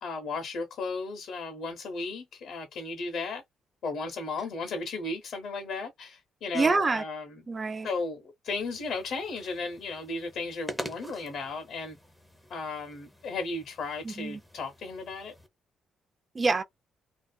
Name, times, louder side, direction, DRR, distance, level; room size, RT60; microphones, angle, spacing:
voice 1, 0.0-3.4 3.8-7.4 7.8-12.0 12.5-15.3, left 3 dB, 70° left, 0.7 m, -35 dB
voice 2, 6.5-7.0 7.5-7.9 14.0-14.4 16.3-16.6, right 3 dB, 30° right, 0.5 m, -26 dB
sound 1, 8.5-15.5, equal, ahead, 0.7 m, -46 dB
2.4 x 2.3 x 2.2 m
cardioid pair, 90°, 0 cm